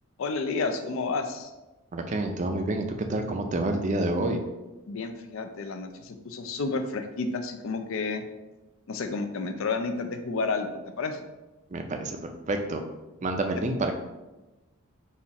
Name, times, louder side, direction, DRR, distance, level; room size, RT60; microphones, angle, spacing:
voice 1, 0.2-1.5 4.9-8.2 8.9-11.3 13.5-13.6, left 3 dB, 65° left, 6 dB, 0.5 m, -31 dB
voice 2, 1.9-4.4 11.7-12.2 12.5-12.8 13.2-13.9, right 2 dB, 35° right, 5 dB, 0.4 m, -28 dB
4.2 x 2.4 x 4.0 m, 1.1 s
head